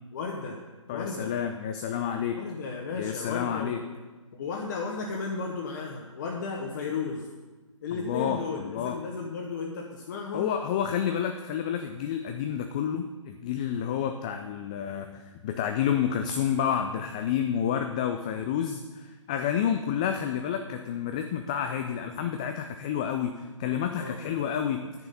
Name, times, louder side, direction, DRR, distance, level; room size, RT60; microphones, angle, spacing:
voice 1, 0.1-0.6 0.9-1.3 2.4-3.8 4.3-7.3 7.8-10.5 23.6-24.5, left 4 dB, 35° left, -1 dB, 1.4 m, -34 dB
voice 2, 0.9-2.4 2.9-3.8 7.9-9.0 10.3-25.1, left 8 dB, 15° left, 6 dB, 0.3 m, -29 dB
11.0 x 9.6 x 5.6 m, 1.2 s
figure-of-eight pair, 135°, 17 cm